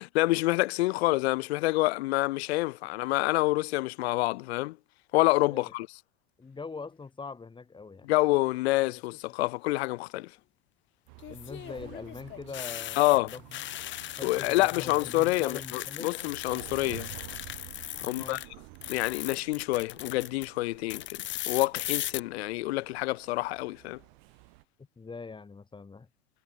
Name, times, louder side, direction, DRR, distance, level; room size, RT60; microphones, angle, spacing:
voice 1, 0.0-4.8 5.1-5.9 8.0-10.3 13.0-13.3 14.2-17.1 18.0-18.4 18.9-24.0, left 20 dB, 80° left, 0.5 m, -27 dB
voice 2, 6.4-8.1 11.3-13.4 14.2-16.1 18.0-18.4 25.0-26.1, left 4 dB, 15° left, 2.3 m, -42 dB
sound 1, 8.8-9.3 11.2-18.5 18.7-20.5 20.9-22.2, left 14 dB, 35° left, 0.9 m, -38 dB
sound 2, 11.1-24.6, right 40 dB or more, 60° right, 0.7 m, -51 dB
hypercardioid pair, 105°, 31 cm